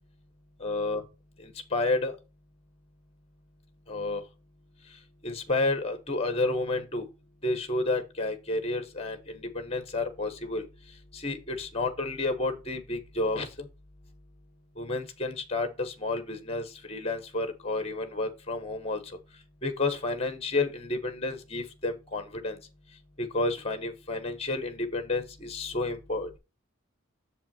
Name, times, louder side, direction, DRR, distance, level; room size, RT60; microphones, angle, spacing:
voice 1, 0.6-1.0 1.4-2.1 3.9-4.2 5.2-7.1 7.4-10.6 11.1-13.7 14.8-19.0 19.6-22.6 23.2-26.4, left 2 dB, 25° left, 1.2 m, -30 dB
7.1 x 5.4 x 4.4 m
head